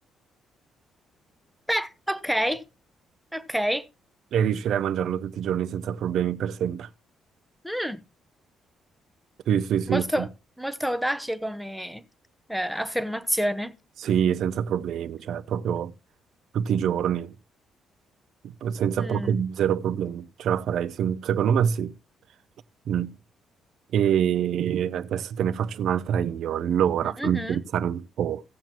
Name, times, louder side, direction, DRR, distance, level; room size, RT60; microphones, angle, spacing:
voice 1, 1.7-2.6 3.3-3.9 7.6-8.0 9.9-10.3 10.6-12.0 12.5-13.7 19.0-19.3 27.0-27.6, equal, ahead, 0.7 m, -28 dB
voice 2, 4.3-6.9 9.5-10.3 14.0-15.9 16.5-17.3 18.4-21.9 22.9-23.2 23.9-28.4, right 9 dB, 60° right, 0.6 m, -25 dB
16.5 x 7.5 x 2.9 m
cardioid pair, 160°, 0 cm